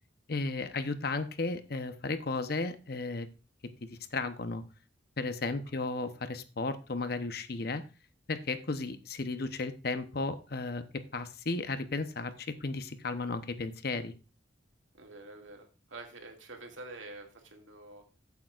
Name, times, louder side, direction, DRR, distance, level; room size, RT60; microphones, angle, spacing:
voice 1, 0.3-3.3 3.8-4.6 5.2-7.8 8.3-10.8 11.1-14.1, left 3 dB, 55° left, 10 dB, 0.9 m, -34 dB
voice 2, 15.0-18.0, right 2 dB, 90° right, 2 dB, 2.3 m, -47 dB
14.5 x 8.4 x 2.5 m, 0.32 s
head